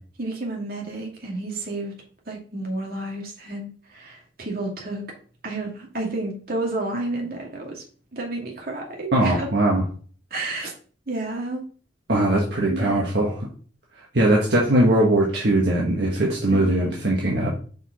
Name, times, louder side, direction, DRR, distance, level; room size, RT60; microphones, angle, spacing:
voice 1, 0.2-1.9 2.3-5.0 5.4-7.8 8.1-9.5 10.3-10.7 11.1-11.7 12.7-13.0 16.5-16.9, right 2 dB, 55° right, -1 dB, 2.0 m, -31 dB
voice 2, 9.1-9.8 12.1-13.3 14.1-17.6, right 1 dB, 75° right, -3 dB, 1.3 m, -20 dB
5.4 x 4.6 x 4.1 m, 0.42 s
head